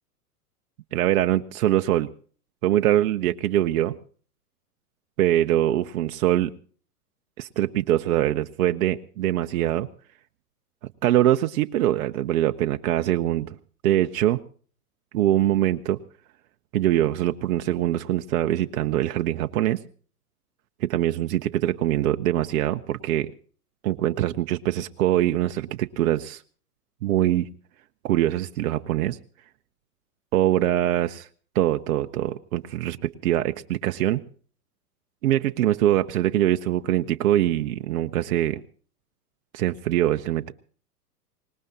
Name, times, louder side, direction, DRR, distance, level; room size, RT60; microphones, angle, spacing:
voice 1, 0.9-2.1 2.6-4.0 5.2-6.5 7.4-9.9 11.0-13.6 13.8-14.4 15.1-16.0 16.7-19.8 20.8-23.3 23.8-26.4 27.0-27.5 28.0-29.2 30.3-31.3 31.5-34.2 35.2-38.6 39.5-40.5, right 13 dB, 60° right, 8 dB, 0.9 m, -23 dB
25.0 x 19.5 x 2.8 m, 0.43 s
hypercardioid pair, 110°, 46 cm